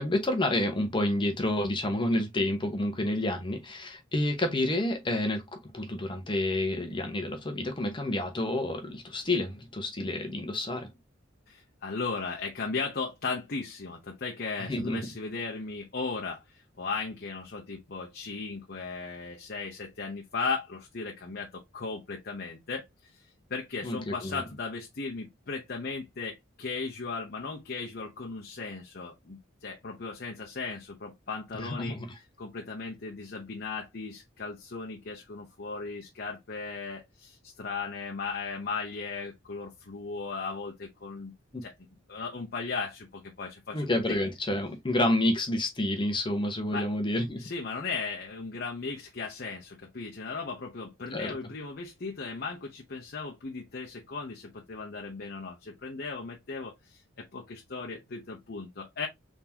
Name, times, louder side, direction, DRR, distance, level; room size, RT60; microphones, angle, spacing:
voice 1, 0.0-5.4 5.7-10.9 14.7-15.0 23.8-24.4 31.8-32.0 41.5-41.6 43.7-47.5 51.1-51.3, left 1 dB, 25° left, 0.9 m, -29 dB
voice 2, 11.5-23.2 23.5-32.0 32.4-41.3 41.6-41.7 42.1-44.2 46.7-46.9 47.4-59.1, left 4 dB, 50° left, 0.7 m, -37 dB
3.9 x 3.5 x 2.8 m
head